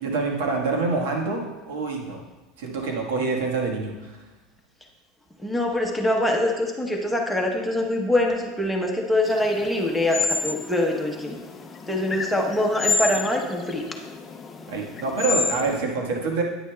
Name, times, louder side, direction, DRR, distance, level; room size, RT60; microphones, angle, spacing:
voice 1, 0.0-2.2 2.6-3.9 14.7-16.4, right 3 dB, 80° right, 0 dB, 1.4 m, -26 dB
voice 2, 5.4-11.4 11.9-13.9, left 1 dB, ahead, 0 dB, 0.9 m, -24 dB
sound 1, 9.2-15.8, left 4 dB, 20° left, 0.4 m, -30 dB
9.7 x 9.5 x 2.3 m, 1.1 s
supercardioid pair, 160°, 0 cm